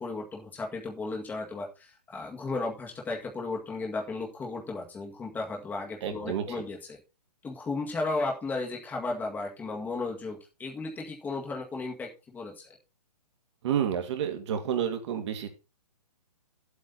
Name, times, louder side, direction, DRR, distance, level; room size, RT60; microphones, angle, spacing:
voice 1, 0.0-7.0 7.4-12.8, left 3 dB, 10° left, -1 dB, 1.9 m, -35 dB
voice 2, 6.0-6.5 13.6-15.5, right 9 dB, 45° right, 5 dB, 2.5 m, -30 dB
11.0 x 8.2 x 4.1 m, 0.29 s
hypercardioid pair, 155°, 20 cm